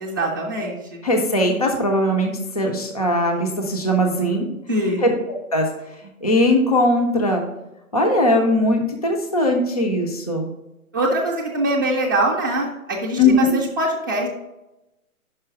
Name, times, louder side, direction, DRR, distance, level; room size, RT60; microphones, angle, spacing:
voice 1, 0.0-1.0 4.7-5.1 10.9-14.3, right 1 dB, 15° right, -5 dB, 0.6 m, -23 dB
voice 2, 1.0-4.5 5.0-5.7 6.2-7.4 7.9-10.5 13.2-13.5, left 1 dB, 25° left, 1 dB, 0.5 m, -19 dB
5.5 x 5.1 x 5.1 m, 0.94 s
hypercardioid pair, 165°, 43 cm